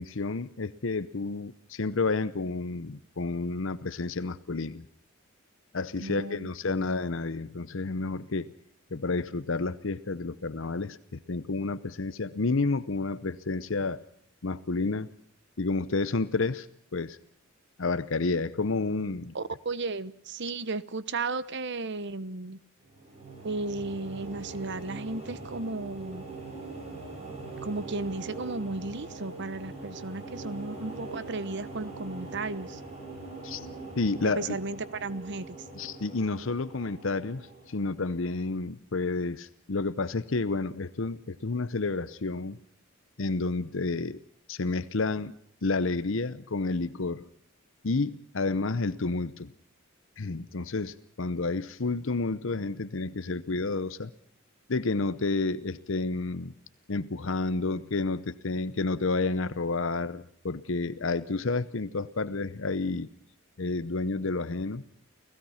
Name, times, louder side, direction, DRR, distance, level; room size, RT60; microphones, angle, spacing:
voice 1, 0.0-4.8 5.7-8.5 8.9-14.0 14.4-15.1 15.6-16.7 16.9-17.2 17.8-19.3 33.4-33.7 34.0-34.6 35.8-42.6 43.2-44.2 44.5-45.3 45.6-47.2 47.8-49.5 50.2-54.1 54.7-56.5 56.9-63.1 63.6-64.8, left 3 dB, 65° left, 14 dB, 0.8 m, -30 dB
voice 2, 6.0-6.7 19.3-22.6 23.4-26.2 27.6-32.8 34.2-35.6, right 3 dB, 55° right, 16 dB, 1.0 m, -34 dB
sound 1, 22.8-38.1, right 2 dB, 30° right, 7.5 m, -42 dB
30.0 x 16.5 x 5.7 m, 0.68 s
head